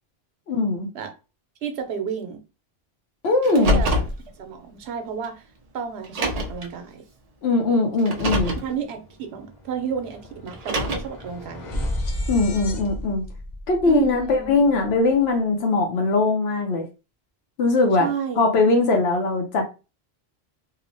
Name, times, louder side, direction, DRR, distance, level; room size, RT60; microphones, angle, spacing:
voice 1, 0.5-0.9 3.2-3.8 7.4-8.5 12.3-13.2 13.7-16.8 17.6-18.1 18.4-19.6, left 3 dB, 80° left, 0.9 m, -20 dB
voice 2, 1.6-2.4 3.5-4.0 4.4-5.4 5.7-7.0 8.6-11.9 13.9-14.5 18.0-18.4, right 7 dB, 90° right, 0.9 m, -31 dB
Car, 3.4-4.2 5.2-5.3 6.0-6.7 8.0-8.7 10.5-11.2, equal, 50° right, 0.5 m, -24 dB
sound 1, 8.6-8.7 9.0-15.2, left 1 dB, 55° left, 0.6 m, -33 dB
2.9 x 2.0 x 2.6 m
omnidirectional pair, 1.1 m